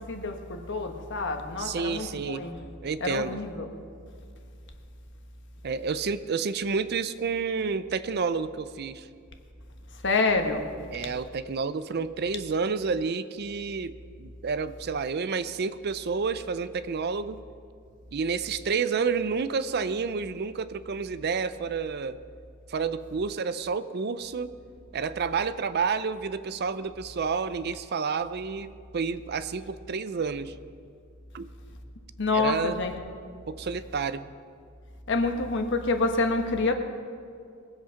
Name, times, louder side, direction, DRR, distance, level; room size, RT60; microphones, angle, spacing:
voice 1, 0.0-2.6 3.0-3.7 10.0-10.6 32.2-32.9 35.1-36.7, left 3 dB, 60° left, 5 dB, 1.3 m, -27 dB
voice 2, 1.6-2.5 2.8-3.4 5.6-9.1 10.9-17.4 18.1-22.2 22.7-24.6 24.9-30.5 31.3-31.5 32.3-32.8 33.5-34.3, right 5 dB, 50° right, 13 dB, 0.5 m, -30 dB
21.5 x 8.0 x 5.7 m, 2.4 s
head